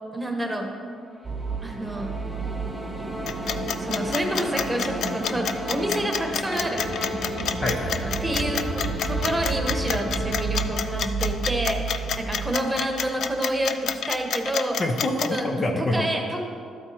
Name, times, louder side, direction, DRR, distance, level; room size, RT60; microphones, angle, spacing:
voice 1, 0.1-0.7 1.6-2.2 3.8-6.9 7.4-7.6 8.2-8.6 9.0-14.8 15.3-15.5 15.8-16.4, right 1 dB, 10° right, 2 dB, 1.2 m, -28 dB
sound 1, 1.0-11.5, left 3 dB, 10° left, 1.2 m, -37 dB
sound 2, 1.2-13.7 13.9-14.0, right 4 dB, 35° right, 0.8 m, -31 dB
sound 3, 3.3-15.4, left 8 dB, 70° left, 0.4 m, -28 dB
voice 2, 7.6-8.2 12.6-12.9 14.8-16.1, left 1 dB, 40° left, 3 dB, 0.7 m, -27 dB
12.5 x 4.5 x 4.3 m, 2.4 s
cardioid pair, 90°, 0 cm